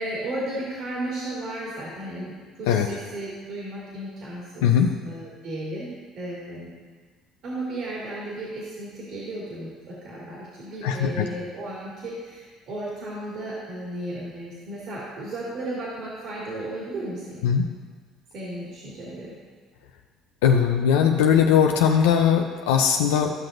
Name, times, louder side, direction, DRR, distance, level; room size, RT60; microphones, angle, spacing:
voice 1, 0.0-4.7 5.0-6.7 7.4-17.6 18.3-19.4, right 1 dB, 65° right, -7 dB, 2.6 m, -34 dB
voice 2, 10.8-11.3 17.4-17.6 20.4-23.3, left 8 dB, 90° left, 3 dB, 0.5 m, -19 dB
13.5 x 6.0 x 2.6 m, 1.5 s
supercardioid pair, 75°, 0 cm